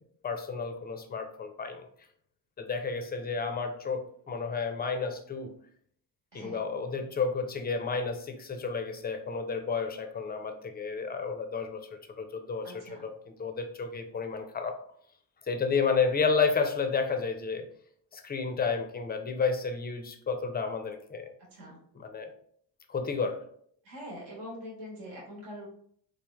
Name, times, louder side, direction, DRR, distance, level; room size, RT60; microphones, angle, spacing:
voice 1, 0.2-1.9 2.6-5.5 6.3-12.7 13.0-14.7 15.5-17.7 18.1-21.3 22.0-22.3 22.9-23.4, left 5 dB, 20° left, 6 dB, 0.4 m, -31 dB
voice 2, 6.3-6.6 12.6-13.0 21.5-21.8 23.8-25.7, equal, 70° right, -4 dB, 1.1 m, -43 dB
3.2 x 2.1 x 2.3 m, 0.62 s
hypercardioid pair, 45°, 49 cm